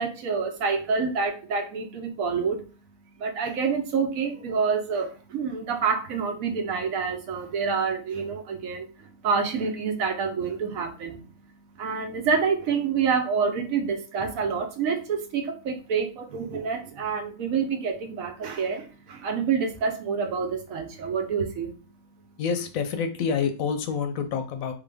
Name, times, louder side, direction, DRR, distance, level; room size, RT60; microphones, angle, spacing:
voice 1, 0.0-2.6 3.2-11.2 11.7-21.7, right 5 dB, 65° right, 6 dB, 1.1 m, -27 dB
voice 2, 22.4-24.7, left 6 dB, 70° left, 7 dB, 0.9 m, -27 dB
4.0 x 3.3 x 3.4 m, 0.36 s
omnidirectional pair, 1.6 m